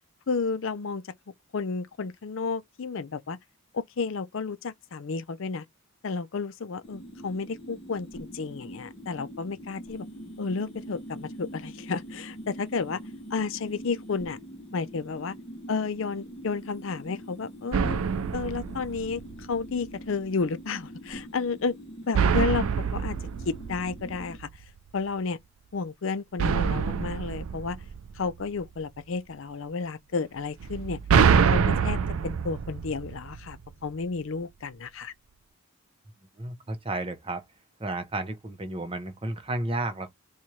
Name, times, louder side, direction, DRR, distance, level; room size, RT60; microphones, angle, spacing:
voice 1, 0.3-1.1 1.5-3.4 3.7-5.6 6.0-10.1 10.4-13.0 13.3-14.4 14.7-15.3 15.7-18.0 18.3-21.8 22.1-23.2 23.4-24.5 24.9-25.4 25.7-27.8 28.2-31.0 31.4-35.1, left 4 dB, 60° left, 0.5 m, -32 dB
sound 1, 6.8-24.4, equal, 25° left, 0.8 m, -43 dB
sound 2, 17.7-19.6 22.1-24.6 26.4-28.6 30.6-33.7, right 6 dB, 70° right, 0.4 m, -26 dB
voice 2, 36.4-37.4 37.8-40.1, right 2 dB, 25° right, 0.6 m, -32 dB
4.3 x 2.3 x 3.1 m
head